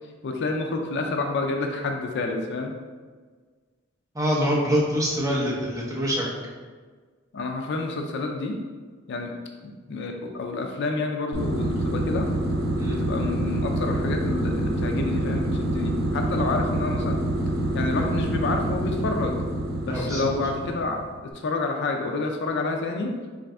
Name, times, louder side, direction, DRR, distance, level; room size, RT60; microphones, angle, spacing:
voice 1, 0.2-2.7 7.3-8.6 9.1-9.3 9.6-12.3 12.8-17.2 17.7-19.4 19.8-21.0 21.3-23.1, left 3 dB, 55° left, 3 dB, 0.4 m, -29 dB
voice 2, 4.1-6.3 12.8-13.0 19.9-20.3, equal, 15° right, -5 dB, 0.8 m, -25 dB
sound 1, 11.3-21.1, right 1 dB, 50° right, 0.8 m, -26 dB
4.0 x 2.5 x 3.3 m, 1.5 s
head